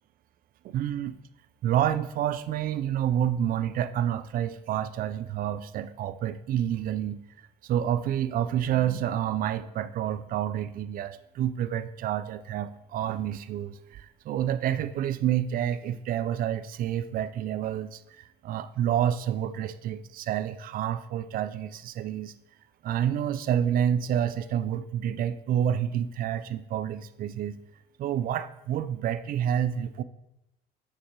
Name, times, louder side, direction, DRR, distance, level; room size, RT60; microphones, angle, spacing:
voice 1, 0.6-1.2 1.6-7.2 7.6-22.3 22.8-27.6 28.0-30.0, right 10 dB, 55° right, 14 dB, 0.4 m, -28 dB
6.6 x 6.3 x 4.6 m, 0.88 s
cardioid pair, 110°, 17 cm